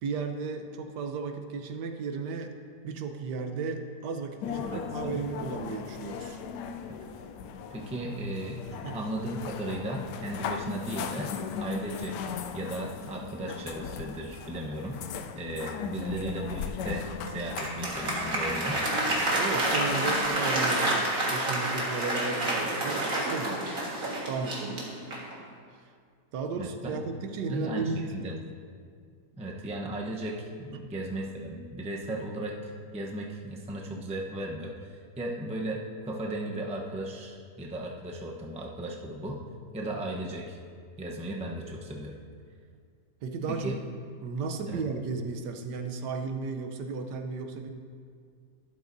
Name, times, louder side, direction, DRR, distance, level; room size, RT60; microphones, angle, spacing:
voice 1, 0.0-2.5 2.8-6.4 8.7-9.0 19.3-23.6 24.3-24.9 26.3-28.4 30.7-30.9 43.2-43.8 44.2-47.7, right 4 dB, 85° right, 6 dB, 1.4 m, -34 dB
sound 1, 4.4-20.3, left 6 dB, 85° left, 1.2 m, -38 dB
voice 2, 4.6-5.2 6.9-7.0 7.7-8.6 8.9-11.3 11.6-15.0 15.3-18.8 26.6-27.0 27.5-28.4 29.3-39.4 39.7-40.6 41.0-42.2 43.5-43.8 44.7-44.8, right 1 dB, 10° right, -1 dB, 0.4 m, -36 dB
Applause, 17.3-25.4, right 1 dB, 55° right, 2.1 m, -29 dB
12.5 x 11.0 x 2.6 m, 2.1 s
omnidirectional pair, 1.8 m